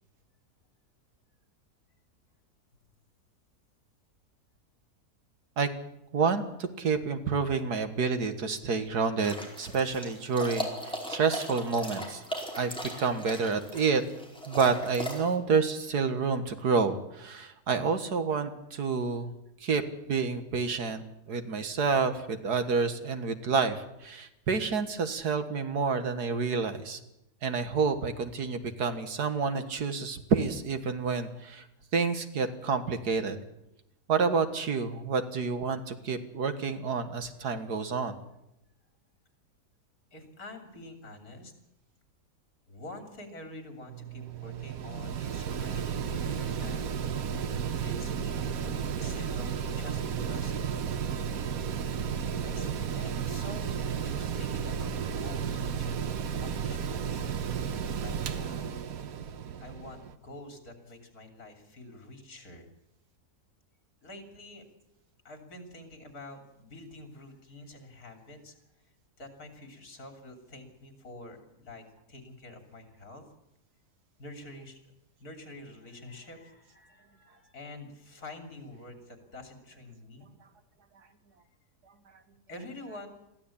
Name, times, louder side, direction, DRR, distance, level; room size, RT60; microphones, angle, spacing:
voice 1, 6.1-12.2 12.6-14.0 14.5-19.3 19.6-19.8 20.1-27.0 27.4-31.7 31.9-33.4 34.1-38.2, right 5 dB, 80° right, 9 dB, 2.1 m, -29 dB
sound 1, 9.2-15.3, equal, 5° left, 4.6 m, -38 dB
voice 2, 40.1-41.5 42.7-46.8 47.7-50.7 52.4-58.8 59.6-62.7 64.0-64.7 65.3-68.6 69.2-73.2 74.2-74.9 75.2-80.3 82.5-83.1, left 2 dB, 70° left, 5 dB, 3.7 m, -47 dB
Mechanical fan, 43.9-60.2, right 7 dB, 65° right, 1.3 m, -33 dB
22.0 x 15.0 x 8.6 m, 0.86 s
omnidirectional pair, 1.7 m